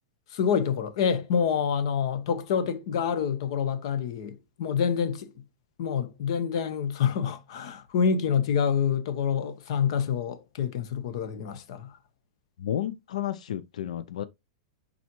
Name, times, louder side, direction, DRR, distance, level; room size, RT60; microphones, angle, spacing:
voice 1, 0.3-5.3 5.8-12.0, left 7 dB, 50° left, 1.1 m, -27 dB
voice 2, 12.6-14.2, left 11 dB, 90° left, 0.5 m, -32 dB
10.5 x 4.1 x 3.0 m
supercardioid pair, 170°, 4 cm